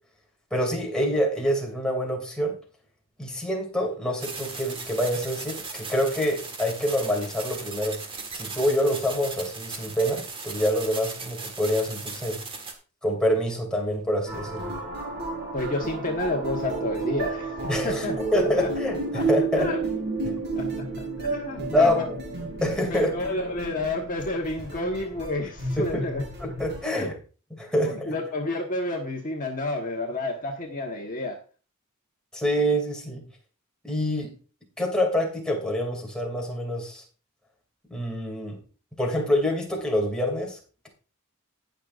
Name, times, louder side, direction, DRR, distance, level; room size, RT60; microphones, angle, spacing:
voice 1, 0.5-2.6 3.2-8.0 8.3-12.4 13.0-14.8 17.7-18.0 18.3-19.7 20.2-20.4 21.7-22.2 22.6-23.1 25.8-26.0 26.4-27.1 27.6-28.2 32.3-33.3 33.8-34.3 34.8-37.0 37.9-38.6 39.0-40.6, equal, 5° left, -1 dB, 2.7 m, -26 dB
sound 1, 4.2-12.7, right 4 dB, 25° right, 1.8 m, -37 dB
sound 2, 14.3-26.8, right 3 dB, 50° right, 4.5 m, -31 dB
voice 2, 15.5-18.2 18.4-18.7 19.1-19.3 19.5-19.8 20.5-22.1 22.9-26.2 26.9-27.1 27.8-31.4, left 2 dB, 40° left, 1 dB, 1.4 m, -30 dB
18.5 x 6.5 x 2.6 m, 0.37 s
head